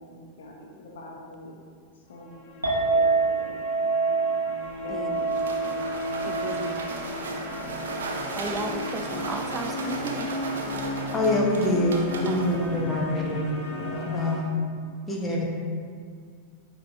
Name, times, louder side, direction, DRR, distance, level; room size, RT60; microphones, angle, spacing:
voice 1, 0.0-1.6 2.1-3.6 4.8-5.8 6.4-7.1, left 1 dB, 60° left, -1 dB, 1.2 m, -44 dB
sound 1, 2.2-14.4, left 2 dB, 45° left, 0.9 m, -35 dB
Chink clink, 2.6-8.9, right 4 dB, 85° right, 1.1 m, -28 dB
sound 2, 4.6-13.4, right 3 dB, 65° right, 0.7 m, -36 dB
voice 2, 6.2-6.9 8.3-10.3 12.3-13.0, right 3 dB, 15° right, 4 dB, 0.6 m, -35 dB
voice 3, 11.1-13.5 13.8-14.6 15.1-15.5, left 1 dB, 15° left, -2 dB, 1.2 m, -25 dB
9.5 x 3.6 x 3.2 m, 2.2 s
figure-of-eight pair, 90°, 0 cm